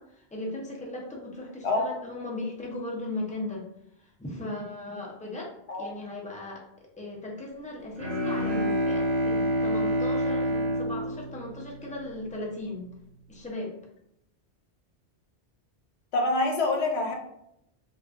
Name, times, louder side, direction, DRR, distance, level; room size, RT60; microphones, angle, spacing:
voice 1, 0.0-3.7 4.0-6.7 7.0-12.9 13.3-13.8, left 1 dB, 10° left, -2 dB, 0.3 m, -37 dB
Bowed string instrument, 8.0-12.3, equal, 60° right, 1.0 m, -28 dB
voice 2, 16.1-17.1, left 2 dB, 75° left, 2 dB, 0.9 m, -25 dB
3.6 x 2.3 x 2.3 m, 0.79 s
omnidirectional pair, 1.1 m